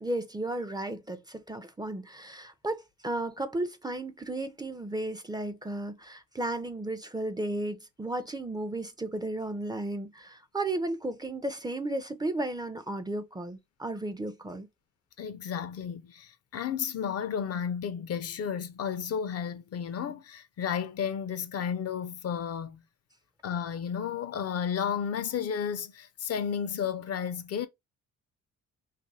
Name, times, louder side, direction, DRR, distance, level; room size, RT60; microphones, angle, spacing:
voice 1, 0.0-14.7, right 2 dB, 15° right, 0.4 m, -34 dB
voice 2, 15.2-22.8 23.4-27.7, left 7 dB, 55° left, 0.5 m, -32 dB
2.6 x 2.5 x 4.0 m
cardioid pair, 90°, 30 cm